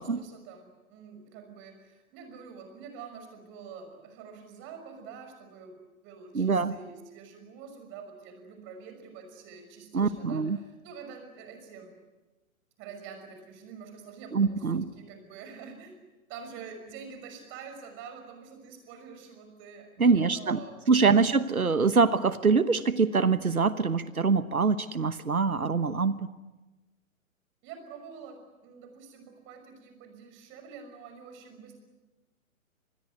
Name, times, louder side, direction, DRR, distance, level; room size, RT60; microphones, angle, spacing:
voice 1, 0.0-5.7 6.0-12.0 12.8-16.0 16.3-21.3 27.6-28.4 28.6-31.7, right 6 dB, 30° right, 6 dB, 5.9 m, -46 dB
voice 2, 6.3-6.7 9.9-10.6 14.3-14.8 20.0-20.6 20.9-26.3, right 4 dB, 85° right, 14 dB, 1.2 m, -24 dB
26.5 x 21.0 x 9.5 m, 1.1 s
figure-of-eight pair, 125°, 42 cm